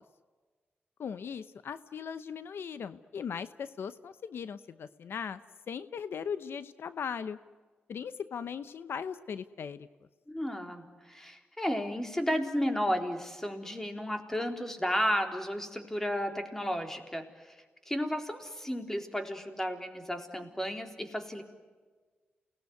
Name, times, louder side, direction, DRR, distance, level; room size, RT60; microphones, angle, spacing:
voice 1, 1.0-5.4 5.7-7.4 7.9-9.9, left 7 dB, 75° left, 13 dB, 0.8 m, -38 dB
voice 2, 10.3-17.3 17.9-21.4, equal, 10° left, 5 dB, 3.8 m, -33 dB
29.0 x 19.5 x 9.5 m, 1.4 s
cardioid pair, 75°, 4 cm